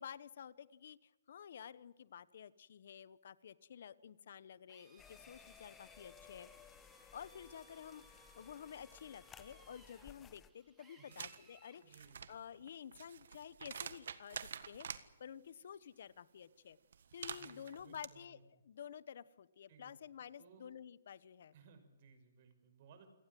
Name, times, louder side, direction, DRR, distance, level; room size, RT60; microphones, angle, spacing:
voice 1, 0.0-6.5 7.1-16.8 17.1-18.4 18.6-21.5, left 8 dB, 55° left, 18 dB, 1.1 m, -52 dB
Drill, 4.7-11.8, right 2 dB, 10° right, 5.0 m, -66 dB
sound 1, 5.0-10.5, left 8 dB, 15° left, 1.1 m, -60 dB
sound 2, 11.1-11.4 11.8-15.0 16.9-18.1, right 7 dB, 65° right, 1.6 m, -47 dB
voice 2, 11.8-12.3 17.3-18.6 19.7-20.7 21.5-23.1, right 5 dB, 40° right, 8 dB, 5.7 m, -63 dB
29.0 x 18.5 x 7.8 m, 1.1 s
hypercardioid pair, 160°, 0 cm